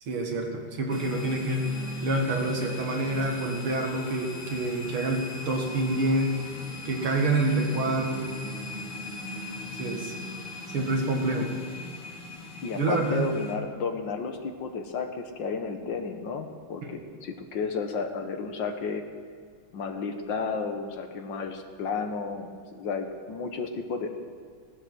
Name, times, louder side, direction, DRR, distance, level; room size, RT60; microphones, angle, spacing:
voice 1, 0.1-1.7 2.0-6.4 6.8-8.3 9.8-10.1 10.7-11.5 12.8-13.3 16.8-17.0, right 2 dB, 75° right, 1 dB, 2.9 m, -27 dB
sound 1, 0.9-13.5, left 3 dB, 85° left, 2.6 m, -38 dB
voice 2, 12.6-19.0 19.7-24.1, left 4 dB, 65° left, 6 dB, 1.7 m, -32 dB
17.0 x 11.5 x 6.2 m, 2.1 s
omnidirectional pair, 2.4 m